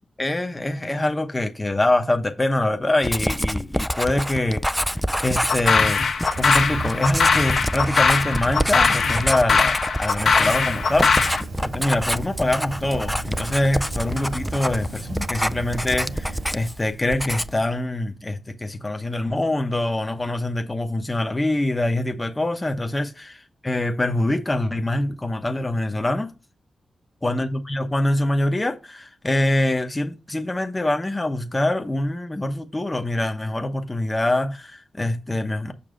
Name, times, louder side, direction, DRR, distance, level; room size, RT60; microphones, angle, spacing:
voice 1, 0.2-6.1 6.4-26.3 27.2-35.7, left 1 dB, 20° left, 0.9 m, -24 dB
Writing, 3.0-16.8 17.1-17.7, equal, ahead, 0.4 m, -27 dB
sound 1, 5.5-11.4, left 5 dB, 75° left, 1.3 m, -20 dB
Fire, 6.3-9.4 9.8-16.9, right 3 dB, 70° right, 2.9 m, -35 dB
6.9 x 6.0 x 3.8 m
wide cardioid pair, 95°, 0 cm